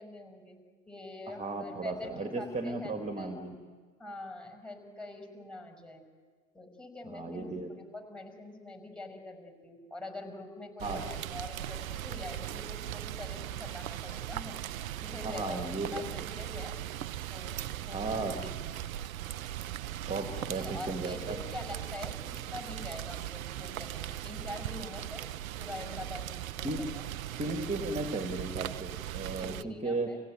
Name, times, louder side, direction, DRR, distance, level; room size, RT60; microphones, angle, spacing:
voice 1, 0.0-3.3 4.0-6.0 6.5-16.7 17.3-18.5 18.8-19.1 20.3-25.3 25.6-27.0 29.3-30.2, left 2 dB, 5° left, 3 dB, 6.1 m, -45 dB
voice 2, 1.3-3.5 7.1-7.7 10.8-11.0 15.2-16.3 17.9-18.5 20.1-21.4 26.6-26.9 27.4-30.1, right 2 dB, 15° right, 5 dB, 2.4 m, -35 dB
Rain, 10.8-29.6, right 12 dB, 85° right, 0.7 m, -39 dB
26.5 x 16.5 x 9.2 m, 1.5 s
hypercardioid pair, 85°, 40 cm